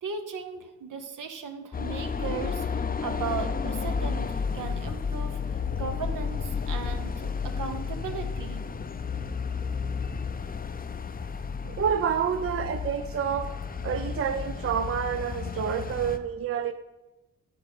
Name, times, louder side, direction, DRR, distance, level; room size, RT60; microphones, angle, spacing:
voice 1, 0.0-8.6 11.1-11.3 11.7-11.8, right 6 dB, 75° right, 0.9 m, -37 dB
sound 1, 1.7-16.2, left 5 dB, 30° left, 0.5 m, -32 dB
voice 2, 11.6-13.5 13.8-16.7, right 7 dB, 45° right, 0.5 m, -28 dB
9.9 x 3.9 x 5.9 m
cardioid pair, 55°, 32 cm